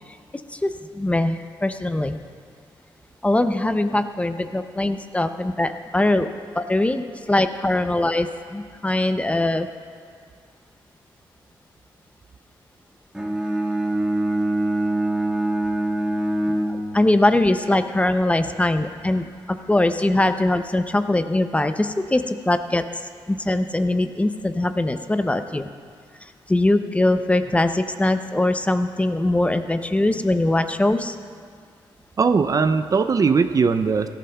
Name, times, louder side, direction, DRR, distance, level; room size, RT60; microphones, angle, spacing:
voice 1, 0.6-2.2 3.2-6.3 6.6-8.3 8.5-9.7 16.7-22.8 23.3-25.7 26.5-31.1, left 1 dB, 15° left, 9 dB, 0.5 m, -21 dB
Bowed string instrument, 13.1-17.4, right 1 dB, 10° right, 1.5 m, -24 dB
voice 2, 32.2-34.1, right 5 dB, 40° right, 10 dB, 0.4 m, -19 dB
17.0 x 13.5 x 2.3 m, 2.1 s
cardioid pair, 90°, 9 cm